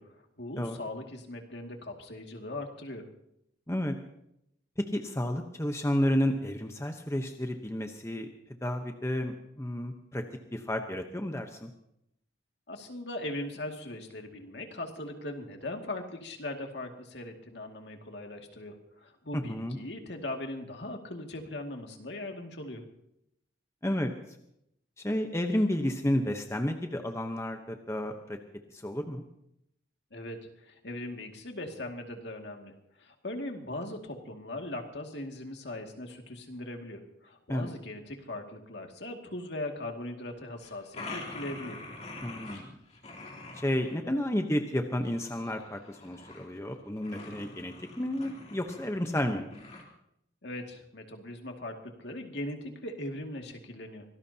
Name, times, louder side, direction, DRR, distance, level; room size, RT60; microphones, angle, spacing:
voice 1, 0.0-3.1 12.7-22.8 30.1-41.8 50.4-54.0, left 1 dB, 65° left, 3 dB, 2.3 m, -40 dB
voice 2, 4.9-8.3 8.6-10.2 10.5-11.7 19.3-19.8 23.8-24.1 25.0-28.4 28.7-29.2 37.5-37.7 42.2-42.8 43.5-49.5, left 1 dB, 15° left, 4 dB, 0.9 m, -31 dB
sound 1, 40.6-42.6 42.9-44.0 44.9-46.6 47.0-49.1 49.5-49.8, left 2 dB, 35° left, 3.1 m, -45 dB
25.0 x 18.5 x 2.9 m, 0.78 s
head